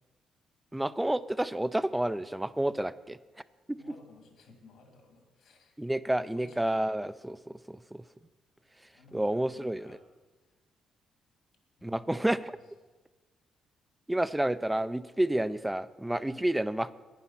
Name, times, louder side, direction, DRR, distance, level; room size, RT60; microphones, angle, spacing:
voice 1, 0.7-3.2 3.7-3.8 5.8-8.0 9.1-10.0 11.8-12.6 14.1-16.9, right 1 dB, 10° right, 16 dB, 0.4 m, -30 dB
voice 2, 3.8-5.7 6.2-7.0 8.9-10.0 11.8-12.6 16.2-16.5, left 3 dB, 75° left, 4 dB, 2.4 m, -55 dB
10.5 x 9.8 x 5.7 m, 1.3 s
cardioid pair, 90°, 0 cm